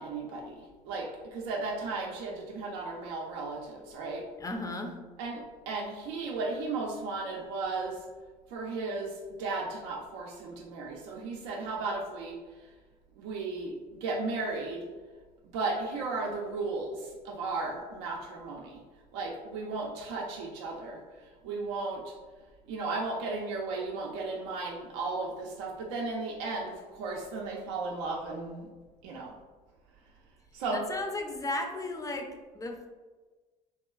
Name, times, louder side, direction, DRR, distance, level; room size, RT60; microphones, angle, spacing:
voice 1, 0.0-4.3 5.2-8.1 8.5-12.4 13.2-14.9 15.5-18.8 19.1-22.1 22.7-28.7 29.0-29.3 30.5-30.8, right 3 dB, 70° right, -1 dB, 0.4 m, -35 dB
voice 2, 4.4-5.0 30.7-32.9, left 2 dB, 15° left, 3 dB, 0.4 m, -35 dB
2.9 x 2.2 x 2.3 m, 1.3 s
hypercardioid pair, 60°, 21 cm